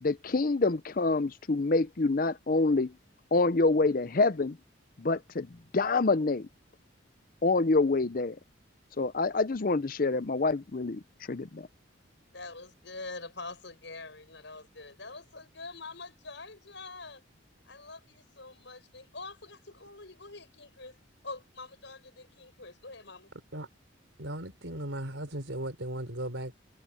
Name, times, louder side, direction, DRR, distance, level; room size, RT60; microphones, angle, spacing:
voice 1, 0.0-2.9 3.3-4.6 5.0-6.5 7.4-8.4 9.0-11.0 11.3-11.7, left 3 dB, 45° left, 0.6 m, -26 dB
voice 2, 12.3-17.2 17.6-21.0 21.2-23.3, left 3 dB, 65° left, 7.2 m, -45 dB
voice 3, 24.2-26.6, right 1 dB, 75° right, 4.0 m, -37 dB
head